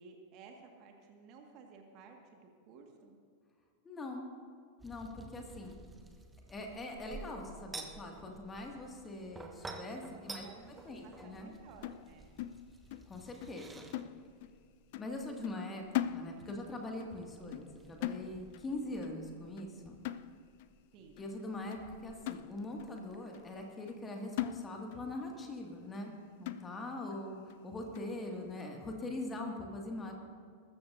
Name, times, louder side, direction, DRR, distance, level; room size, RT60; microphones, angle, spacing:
voice 1, 0.0-3.2 10.1-12.3 20.9-21.2 27.0-27.2, right 5 dB, 40° right, 2 dB, 1.7 m, -56 dB
voice 2, 3.8-4.3 4.8-5.8 6.5-10.5 10.9-11.5 13.1-13.8 15.0-20.0 21.2-26.1 26.4-30.1, left 2 dB, 15° left, 1 dB, 2.0 m, -42 dB
sound 1, 4.8-23.7, right 2 dB, 10° right, 1.0 m, -53 dB
sound 2, 11.8-13.1 13.4-13.6 13.9-14.6 14.9-15.2 15.4-16.7 17.0-17.2 17.5-17.8 18.0-18.7 19.0-19.3 19.6-19.7 20.0-20.7 21.2-21.3 21.7-21.8 22.3-22.9 23.3-23.4 23.9-24.1 24.4-25.1 25.4-25.5 25.9-26.1 26.5-27.0 27.5-27.6 27.9-28.2, left 12 dB, 50° left, 0.4 m, -40 dB
21.5 x 13.0 x 2.6 m, 2.2 s
figure-of-eight pair, 90°, 0 cm